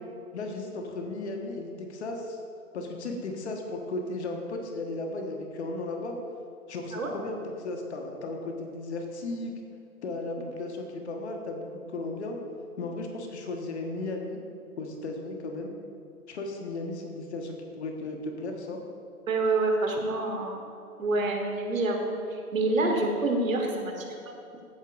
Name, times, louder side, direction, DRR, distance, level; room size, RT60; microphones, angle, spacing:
voice 1, 0.3-2.4 2.7-6.1 6.7-9.5 10.0-12.4 12.8-14.4 14.8-15.7 16.3-18.8 24.0-24.2, left 2 dB, 45° left, 2 dB, 1.3 m, -35 dB
voice 2, 19.3-20.6 21.0-24.1, right 2 dB, 60° right, 2 dB, 1.6 m, -27 dB
14.0 x 8.7 x 2.5 m, 2.5 s
figure-of-eight pair, 125°, 45 cm